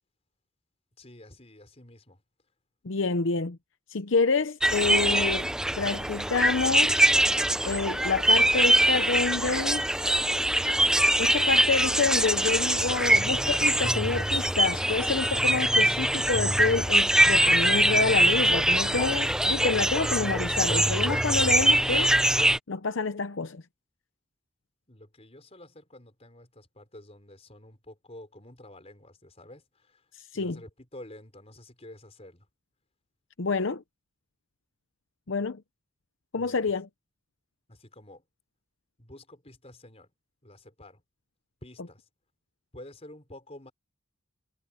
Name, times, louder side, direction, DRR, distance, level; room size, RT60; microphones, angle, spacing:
voice 1, 1.0-2.2 24.9-32.5 36.3-36.6 37.7-38.2 39.0-40.1 40.4-41.0 41.6-42.0 42.7-43.7, left 1 dB, 30° left, 4.7 m, -49 dB
voice 2, 2.8-3.6 3.9-5.5 5.8-9.9 11.2-22.1 22.7-23.6 30.2-30.6 33.4-33.8 35.3-35.6 36.3-36.9, left 4 dB, 70° left, 0.7 m, -28 dB
sound 1, 4.6-22.6, right 1 dB, 5° right, 0.5 m, -23 dB
head